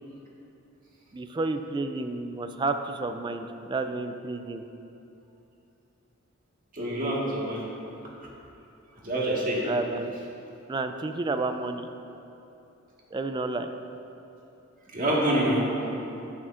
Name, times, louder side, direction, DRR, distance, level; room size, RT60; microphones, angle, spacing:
voice 1, 1.1-4.6 9.6-10.1 10.7-11.9 13.1-13.7, right 3 dB, 20° right, 7 dB, 0.3 m, -30 dB
voice 2, 6.7-7.6 9.0-9.6 14.9-15.6, right 1 dB, 40° right, -5 dB, 1.7 m, -26 dB
11.0 x 8.6 x 2.5 m, 2.8 s
head